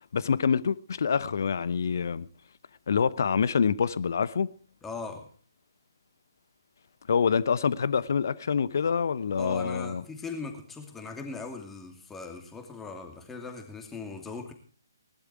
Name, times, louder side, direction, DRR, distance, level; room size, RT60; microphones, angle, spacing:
voice 1, 0.1-2.3 2.9-4.5 7.1-10.0, left 6 dB, 55° left, 0.9 m, -26 dB
voice 2, 4.8-5.3 9.4-14.5, left 4 dB, 10° left, 2.5 m, -39 dB
19.0 x 12.0 x 4.8 m
figure-of-eight pair, 135°, 2 cm